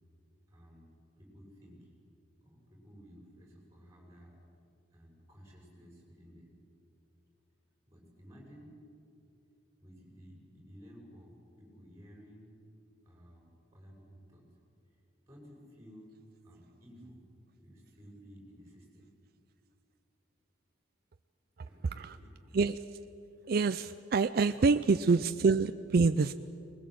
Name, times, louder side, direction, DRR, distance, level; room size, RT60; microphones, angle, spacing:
voice 1, 0.5-1.9 2.4-4.4 4.9-6.6 7.9-8.7 9.8-12.6 13.0-14.5 15.3-16.2 16.4-17.3 17.6-19.1 21.6-22.6 24.6-24.7, equal, 15° right, -1 dB, 6.1 m, -55 dB
voice 2, 23.5-26.3, right 4 dB, 50° right, 10 dB, 0.4 m, -26 dB
20.5 x 20.5 x 7.7 m, 2.6 s
head